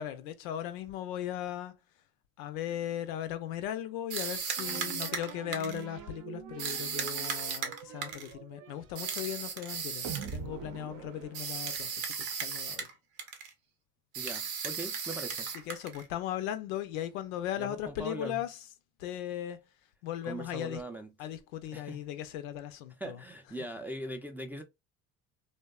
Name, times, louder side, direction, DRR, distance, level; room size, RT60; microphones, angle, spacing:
voice 1, 0.0-1.8 2.4-12.9 15.6-18.6 19.0-19.7 20.0-20.8 21.2-23.2, left 11 dB, 90° left, 0.5 m, -37 dB
sound 1, 4.1-5.8 6.6-8.3 8.9-10.4 11.3-12.9 13.2-13.5 14.1-16.0, right 6 dB, 85° right, 0.8 m, -36 dB
sound 2, 4.6-12.1, right 7 dB, 50° right, 0.6 m, -44 dB
voice 2, 14.2-15.5 17.6-18.4 20.2-21.1 21.7-22.0 23.0-24.6, right 1 dB, 5° right, 0.4 m, -41 dB
2.7 x 2.1 x 2.3 m
supercardioid pair, 75°, 41 cm